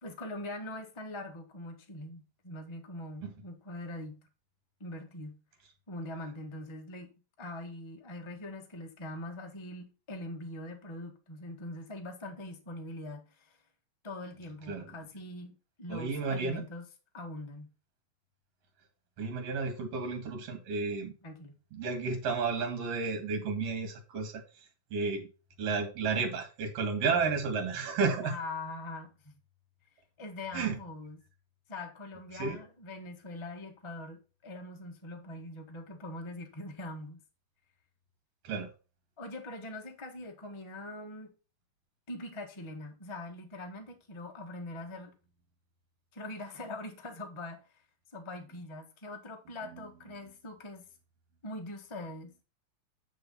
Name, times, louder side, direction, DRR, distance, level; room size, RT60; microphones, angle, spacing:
voice 1, 0.0-4.2 4.8-5.4 5.9-7.1 7.4-13.6 14.0-16.9 17.1-17.7 21.2-21.6 28.2-29.3 30.2-31.2 31.7-37.2 39.2-41.3 42.1-45.1 46.1-47.8 48.1-50.8 51.4-52.3, left 1 dB, 20° left, 0.7 m, -42 dB
voice 2, 15.9-16.6 19.2-21.1 21.7-24.4 24.9-25.3 25.6-28.3 30.5-30.8 32.3-32.6 38.4-38.7 49.7-49.9, right 4 dB, 55° right, 2.9 m, -32 dB
9.1 x 5.1 x 5.5 m
omnidirectional pair, 3.7 m